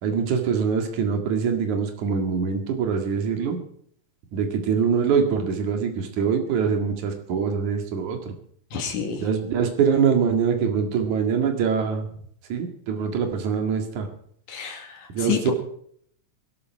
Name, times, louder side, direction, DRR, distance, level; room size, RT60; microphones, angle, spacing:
voice 1, 0.0-3.6 4.3-8.3 9.2-12.0 12.5-14.1 15.1-15.5, right 6 dB, 75° right, 5 dB, 3.4 m, -24 dB
voice 2, 8.7-9.2 14.5-15.5, left 7 dB, 80° left, 2 dB, 3.8 m, -29 dB
20.5 x 12.0 x 4.7 m, 0.63 s
omnidirectional pair, 3.5 m